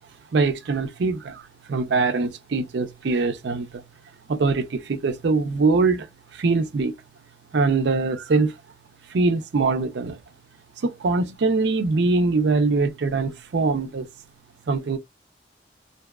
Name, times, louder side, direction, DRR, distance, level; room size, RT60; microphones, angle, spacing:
voice 1, 0.3-1.4 1.7-3.8 4.3-6.1 6.3-6.9 7.5-8.5 9.1-10.2 10.8-14.1 14.7-15.0, right 3 dB, 65° right, 0.4 m, -22 dB
2.7 x 2.1 x 2.2 m
head